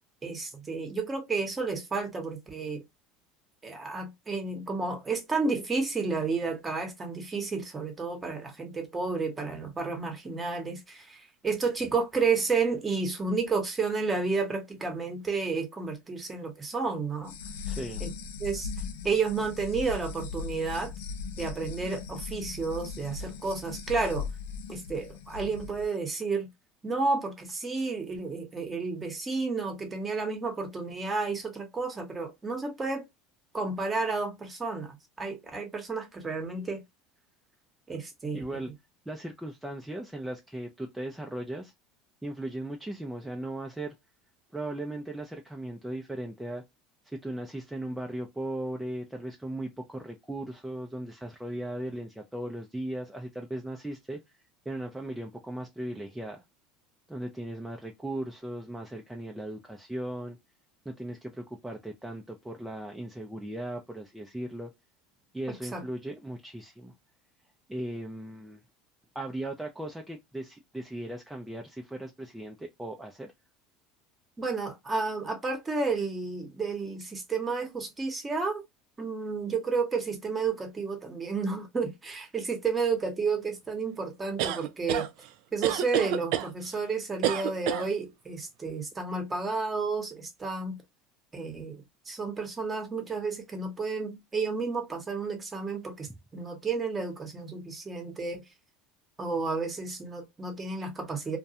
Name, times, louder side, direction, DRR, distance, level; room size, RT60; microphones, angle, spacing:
voice 1, 0.2-2.8 3.6-17.3 18.0-18.1 18.4-18.7 19.0-20.9 21.4-24.3 24.7-26.5 26.8-33.0 33.5-36.8 37.9-38.6 65.7-65.8 74.4-78.6 79.0-85.1 85.5-90.8 91.3-98.4 99.2-101.4, right 4 dB, 20° right, 0.9 m, -31 dB
sound 1, 17.2-25.9, left 5 dB, 85° left, 0.4 m, -38 dB
voice 2, 17.7-18.0 38.3-38.7 39.1-41.7 42.2-43.9 44.5-46.6 47.0-54.2 54.7-56.4 57.1-60.4 60.9-64.7 65.3-66.9 67.7-68.6 69.1-73.3, right 1 dB, 5° right, 0.4 m, -37 dB
sound 2, 84.4-85.1 85.6-86.5 87.2-87.9, right 11 dB, 70° right, 0.4 m, -28 dB
2.2 x 2.1 x 2.7 m
supercardioid pair, 95°, 0 cm